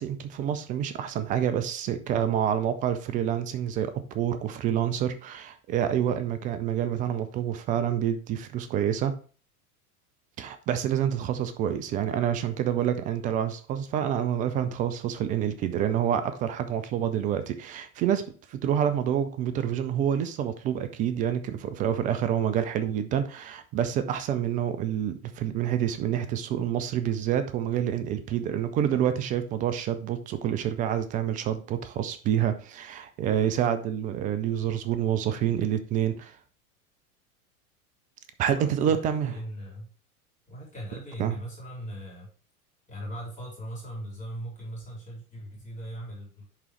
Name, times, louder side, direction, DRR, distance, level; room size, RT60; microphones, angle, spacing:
voice 1, 0.0-9.1 10.4-36.4 38.4-39.3 41.2-41.4, right 9 dB, 20° right, 0.4 m, -27 dB
voice 2, 38.5-39.9 40.5-42.3 42.9-46.5, equal, 15° left, 3.5 m, -39 dB
10.5 x 3.8 x 3.2 m
figure-of-eight pair, 85°, 44 cm